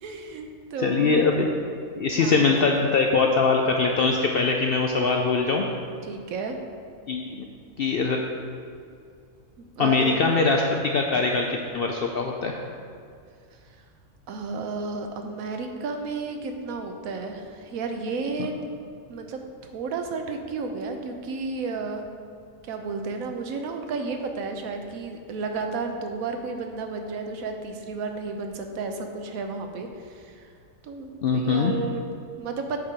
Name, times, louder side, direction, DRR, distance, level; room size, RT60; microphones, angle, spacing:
voice 1, 0.0-1.3 2.1-2.6 6.0-6.6 9.6-10.2 14.3-18.5 19.1-19.4 19.7-22.1 22.6-30.5 30.8-32.8, right 4 dB, 80° right, 5 dB, 1.2 m, -32 dB
voice 2, 0.8-1.5 2.0-5.6 7.1-7.5 7.8-8.2 9.8-12.6 18.4-18.5 31.2-31.7, left 4 dB, 70° left, 2 dB, 0.5 m, -22 dB
7.7 x 4.8 x 4.5 m, 2.3 s
omnidirectional pair, 1.4 m